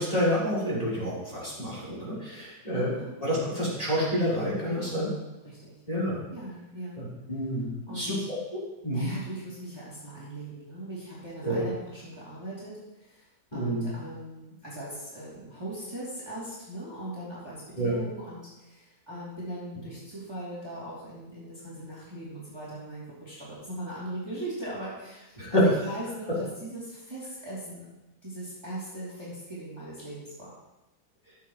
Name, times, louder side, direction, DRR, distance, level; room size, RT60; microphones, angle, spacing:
voice 1, 0.0-2.9 3.2-5.1 5.9-6.2 7.0-7.7 7.9-9.1 11.4-11.6 13.5-13.9 17.8-18.0 25.4-25.6, equal, 20° left, -8 dB, 3.9 m, -28 dB
voice 2, 2.3-3.1 4.7-5.1 5.4-5.7 6.3-7.0 7.9-8.1 8.9-27.9 28.2-30.5, right 1 dB, 15° right, -9 dB, 3.0 m, -40 dB
15.0 x 7.6 x 3.1 m, 1.0 s
omnidirectional pair, 1.8 m